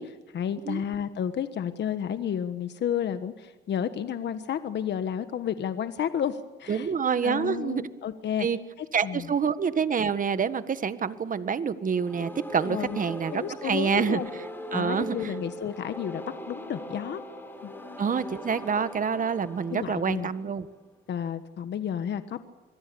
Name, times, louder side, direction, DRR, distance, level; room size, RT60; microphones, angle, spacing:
voice 1, 0.0-6.9 7.2-8.5 8.8-9.3 12.6-13.0 13.3-14.3 14.7-17.2 17.6-17.7 19.7-20.3 21.1-22.4, left 9 dB, 60° left, 10 dB, 1.3 m, -31 dB
voice 2, 6.7-7.8 8.4-8.6 8.9-14.2 14.7-15.3 18.0-20.7, right 6 dB, 40° right, 12 dB, 1.6 m, -27 dB
sound 1, 11.9-20.8, equal, 10° left, 7.0 m, -40 dB
26.0 x 22.5 x 7.0 m, 1.3 s
cardioid pair, 90°, 20 cm